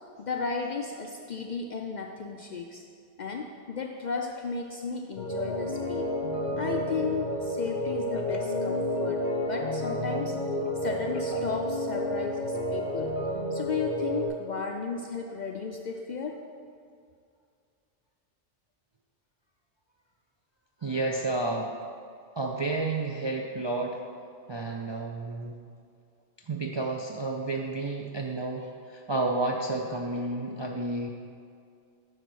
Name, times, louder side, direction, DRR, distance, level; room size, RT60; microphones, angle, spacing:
voice 1, 0.2-2.8 3.2-6.1 6.6-10.4 10.8-13.2 13.5-16.4, left 5 dB, 60° left, 3 dB, 0.5 m, -34 dB
sound 1, 5.2-14.3, equal, 45° left, 1.2 m, -30 dB
voice 2, 20.8-21.7 22.4-24.0 24.5-25.6 26.4-31.1, right 2 dB, 45° right, 0 dB, 0.3 m, -31 dB
9.2 x 4.1 x 6.2 m, 2.3 s
omnidirectional pair, 1.2 m